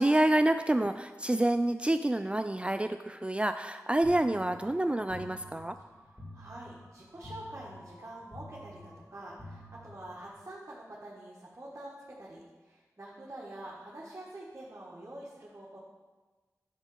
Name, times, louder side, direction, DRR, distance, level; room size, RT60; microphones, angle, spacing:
voice 1, 0.0-5.8, right 1 dB, 20° right, 9 dB, 0.4 m, -28 dB
sound 1, 4.0-10.4, left 1 dB, 25° left, 2.9 m, -50 dB
voice 2, 6.3-15.8, right 1 dB, 50° right, -6 dB, 1.9 m, -46 dB
11.0 x 4.0 x 7.3 m, 1.3 s
cardioid pair, 45°, 6 cm